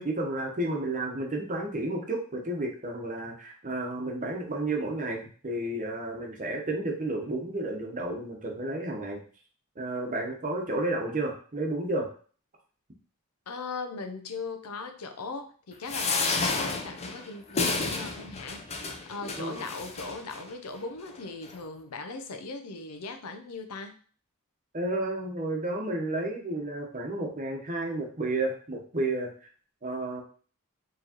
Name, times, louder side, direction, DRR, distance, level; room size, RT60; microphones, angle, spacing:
voice 1, 0.0-9.2 9.8-12.1 19.4-19.7 24.7-29.3 29.8-30.2, right 2 dB, 35° right, 1 dB, 0.9 m, -31 dB
voice 2, 13.5-23.9, left 3 dB, 80° left, 7 dB, 0.6 m, -39 dB
sound 1, 15.9-20.4 21.1-21.2 21.4-21.5, left 3 dB, 30° left, 0.5 m, -31 dB
4.5 x 3.1 x 2.9 m, 0.43 s
head